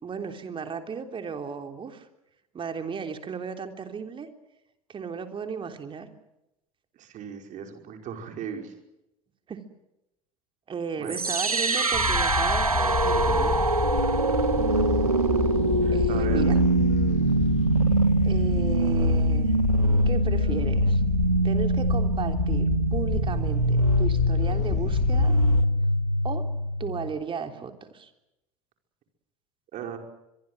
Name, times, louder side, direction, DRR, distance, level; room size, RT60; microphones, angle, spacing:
voice 1, 0.0-2.1 2.5-4.3 4.9-6.1 9.5-9.6 10.7-13.6 15.9-16.6 18.2-19.6 20.1-21.0 21.4-25.3 26.2-26.5 26.8-28.1, right 6 dB, 30° right, 6 dB, 3.5 m, -35 dB
voice 2, 7.0-8.7 11.0-11.2 15.8-16.6 29.7-30.0, right 8 dB, 45° right, 4 dB, 5.3 m, -37 dB
sound 1, 11.1-27.1, right 2 dB, 90° right, 1.8 m, -23 dB
sound 2, 11.9-25.6, left 11 dB, 40° left, 1.5 m, -29 dB
25.0 x 23.0 x 8.0 m, 0.90 s
figure-of-eight pair, 75°, 18 cm